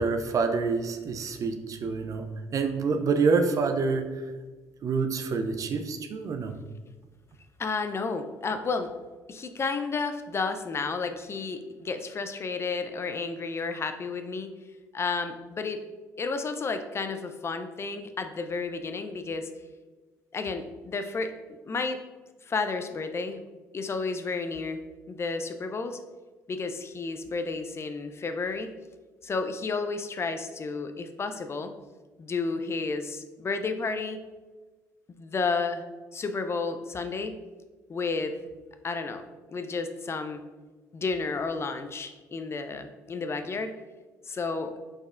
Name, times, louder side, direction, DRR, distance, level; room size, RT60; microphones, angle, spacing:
voice 1, 0.0-4.2 4.8-6.5, right 4 dB, 45° right, 7 dB, 0.5 m, -27 dB
voice 2, 7.6-8.9 9.3-14.5 14.9-15.8 16.2-19.5 20.3-21.3 21.6-22.0 22.5-23.4 23.7-24.8 25.1-26.0 26.5-28.7 29.2-31.7 32.2-34.2 35.2-35.8 36.1-37.3 37.9-38.3 38.8-40.4 40.9-43.7 44.3-44.7, left 4 dB, 30° left, 8 dB, 0.4 m, -31 dB
5.0 x 4.2 x 2.3 m, 1.3 s
hypercardioid pair, 50°, 8 cm